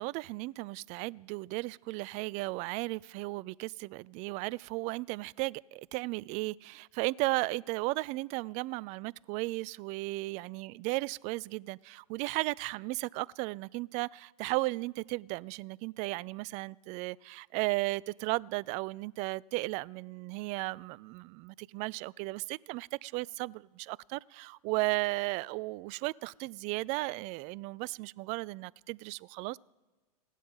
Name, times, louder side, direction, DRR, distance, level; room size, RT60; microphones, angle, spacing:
voice 1, 0.0-29.6, right 22 dB, 35° right, 0.4 m, -35 dB
16.5 x 12.0 x 5.5 m
hypercardioid pair, 110°, 20 cm